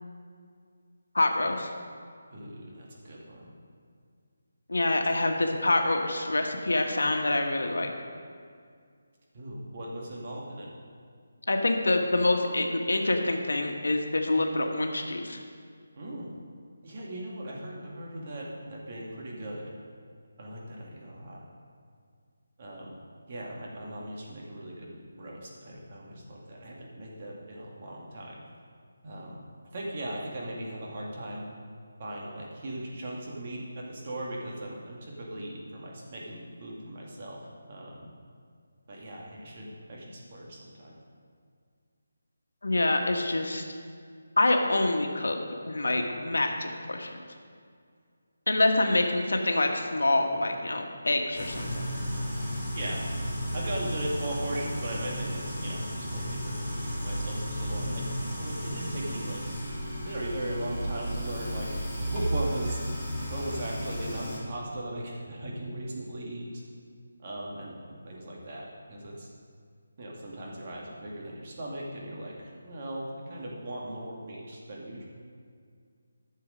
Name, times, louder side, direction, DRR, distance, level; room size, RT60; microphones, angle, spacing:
voice 1, 1.1-1.7 4.7-7.9 11.5-15.4 42.6-43.6 44.4-45.4 45.7-47.1 48.5-51.8, left 2 dB, 85° left, 3 dB, 1.3 m, -26 dB
voice 2, 2.3-3.5 9.3-10.7 16.0-16.3 16.8-19.7 20.4-21.4 22.6-22.9 23.3-28.4 29.0-29.4 29.7-31.5 32.0-37.4 37.7-38.1 38.9-41.0 48.8-48.9 52.7-53.0 53.5-58.0 58.4-59.4 60.0-62.8 63.3-66.5 67.2-69.3 70.0-75.1, right 1 dB, 40° right, -3 dB, 2.1 m, -38 dB
sound 1, 51.3-64.4, equal, ahead, 3.1 m, -33 dB
11.5 x 6.9 x 5.1 m, 2.1 s
figure-of-eight pair, 165°, 0 cm